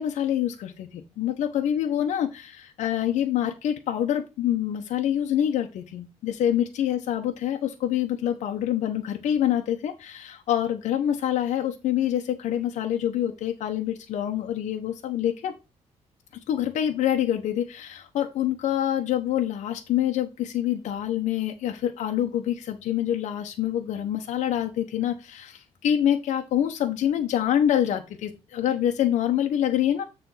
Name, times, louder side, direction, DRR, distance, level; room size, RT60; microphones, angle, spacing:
voice 1, 0.0-15.5 16.5-30.0, left 10 dB, 80° left, 4 dB, 0.9 m, -26 dB
9.5 x 3.4 x 5.6 m, 0.27 s
cardioid pair, 160°, 12 cm